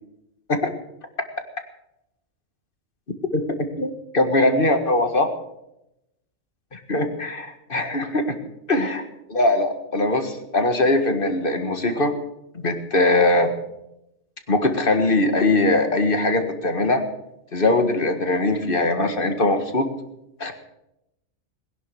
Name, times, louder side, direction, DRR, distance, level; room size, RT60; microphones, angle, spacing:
voice 1, 3.8-5.3 6.7-8.3 8.7-9.0 9.3-12.1 12.5-13.5 14.5-17.0 17.5-19.9 20.4-20.5, left 2 dB, 40° left, 7 dB, 2.0 m, -21 dB
20.5 x 11.0 x 6.4 m, 0.85 s
omnidirectional pair, 1.4 m